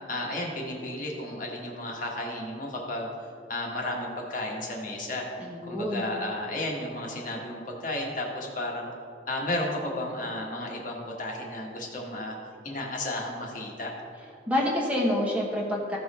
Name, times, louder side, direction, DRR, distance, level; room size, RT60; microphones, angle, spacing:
voice 1, 0.1-3.1 3.5-5.2 5.7-8.9 9.3-12.3 12.6-13.9, left 1 dB, 45° left, -1 dB, 1.5 m, -33 dB
voice 2, 5.4-6.1 14.5-16.0, left 1 dB, 5° right, -3 dB, 1.3 m, -27 dB
15.0 x 5.4 x 4.3 m, 2.4 s
head